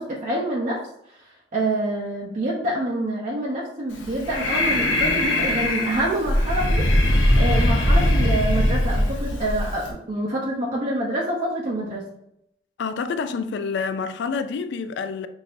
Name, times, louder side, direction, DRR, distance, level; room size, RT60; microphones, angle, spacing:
voice 1, 0.0-6.9 7.4-12.0, right 1 dB, 45° right, 0.7 m, -27 dB
Breathing, 3.9-9.9, left 1 dB, 80° left, 0.9 m, -21 dB
voice 2, 12.8-15.3, left 5 dB, 65° left, 0.3 m, -28 dB
6.0 x 2.6 x 2.5 m
head